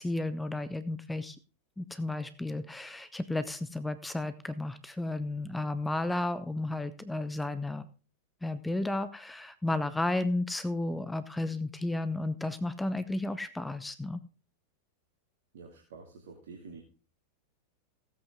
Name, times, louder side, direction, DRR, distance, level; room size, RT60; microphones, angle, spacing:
voice 1, 0.0-1.4 1.8-7.9 8.4-14.2, left 2 dB, 5° left, 14 dB, 0.8 m, -33 dB
voice 2, 15.5-16.8, right 4 dB, 60° right, 1 dB, 2.2 m, -48 dB
16.5 x 8.3 x 3.6 m, 0.35 s
figure-of-eight pair, 90°, 0 cm